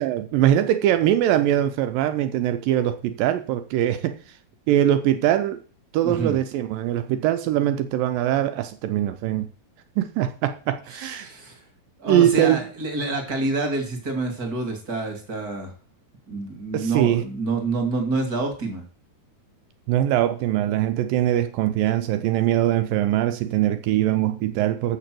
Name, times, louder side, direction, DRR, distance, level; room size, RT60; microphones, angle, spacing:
voice 1, 0.0-4.2 4.7-5.6 5.9-9.5 10.0-11.3 12.1-12.7 16.7-17.2 19.9-25.0, right 12 dB, 85° right, 9 dB, 2.4 m, -22 dB
voice 2, 6.0-6.4 10.9-11.6 12.0-15.7 16.3-18.8, right 3 dB, 30° right, 5 dB, 2.4 m, -27 dB
6.8 x 6.7 x 7.6 m, 0.41 s
omnidirectional pair, 4.0 m